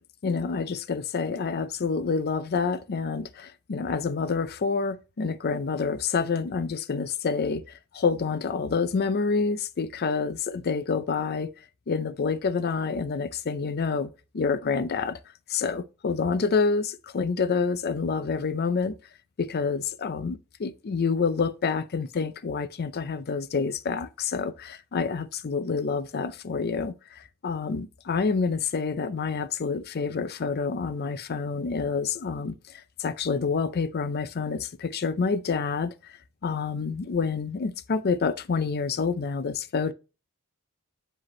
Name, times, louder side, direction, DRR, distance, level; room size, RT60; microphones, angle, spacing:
voice 1, 0.2-7.6 7.9-11.5 11.9-14.1 14.3-15.2 15.5-19.0 19.4-36.2 36.4-39.9, left 5 dB, 50° left, 0.5 m, -28 dB
7.8 x 4.9 x 3.1 m
head